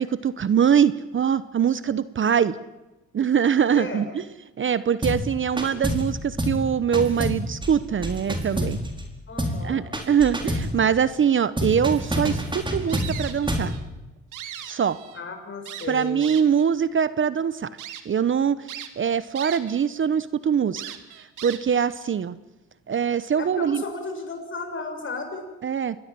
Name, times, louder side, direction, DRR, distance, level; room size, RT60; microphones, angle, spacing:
voice 1, 0.0-2.6 3.1-4.2 4.6-8.8 9.6-13.7 14.6-15.0 15.9-17.7 18.0-18.7 19.0-20.8 21.2-22.3 22.9-23.8 25.6-26.0, right 7 dB, 40° right, 16 dB, 0.9 m, -23 dB
voice 2, 3.7-4.0 9.3-9.8 15.1-16.2 23.4-25.5, left 3 dB, 40° left, 5 dB, 6.9 m, -34 dB
sound 1, 5.0-5.3 5.6-6.1 6.4-6.6 6.9-9.1 9.4-9.6 9.9-10.7 11.6-13.7, equal, 15° right, 4.7 m, -27 dB
sound 2, 12.9-13.8 14.2-15.2 15.7-16.6 17.2-17.3 17.8-18.0 18.7-19.8 20.1-20.2 20.8-21.9, right 11 dB, 85° right, 2.1 m, -39 dB
26.5 x 20.5 x 7.7 m, 1.0 s
cardioid pair, 90°, 30 cm